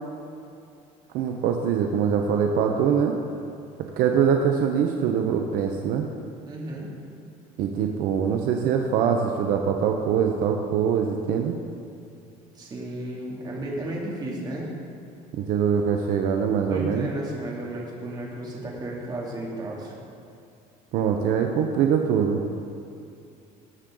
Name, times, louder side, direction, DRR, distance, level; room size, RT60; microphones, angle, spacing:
voice 1, 1.1-3.1 4.0-6.1 7.6-11.6 15.4-17.1 20.9-22.4, right 7 dB, 70° right, 3 dB, 0.9 m, -23 dB
voice 2, 6.5-6.9 12.5-14.7 16.7-19.9, right 1 dB, 25° right, -4 dB, 2.8 m, -33 dB
19.0 x 7.5 x 3.9 m, 2.6 s
cardioid pair, 135°, 15 cm